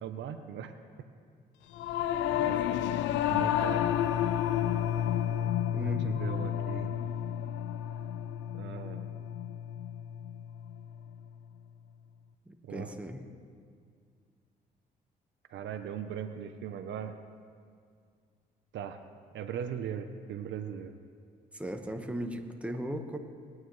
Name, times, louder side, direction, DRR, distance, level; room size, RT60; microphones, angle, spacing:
voice 1, 0.0-0.7 2.4-2.6 3.1-3.8 5.8-7.0 8.5-9.1 12.6-13.0 15.5-17.2 18.7-19.0 19.3-20.9, right 8 dB, 70° right, 9 dB, 0.8 m, -39 dB
Singing / Musical instrument, 1.7-11.3, left 10 dB, 80° left, 0.5 m, -31 dB
voice 2, 2.3-2.8 5.7-6.2 12.7-13.2 21.5-23.2, right 1 dB, 5° right, 4 dB, 1.3 m, -37 dB
21.0 x 9.3 x 3.2 m, 2.1 s
supercardioid pair, 65°, 19 cm